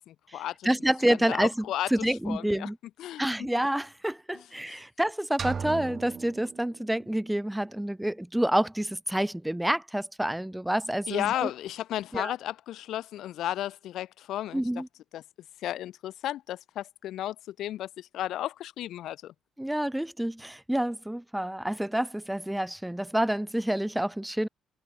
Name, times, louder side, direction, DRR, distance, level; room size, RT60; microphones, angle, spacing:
voice 1, 0.0-0.7 1.3-2.7 3.0-3.5 4.3-4.8 11.1-14.6 15.1-15.2 15.6-19.3, left 13 dB, 80° left, 1.6 m, -34 dB
voice 2, 0.6-1.6 1.9-2.8 3.2-11.5 12.1-12.3 14.5-14.9 19.6-24.5, right 1 dB, 5° right, 4.1 m, -28 dB
sound 1, 5.4-7.3, right 6 dB, 45° right, 2.6 m, -37 dB
cardioid pair, 90°, 0 cm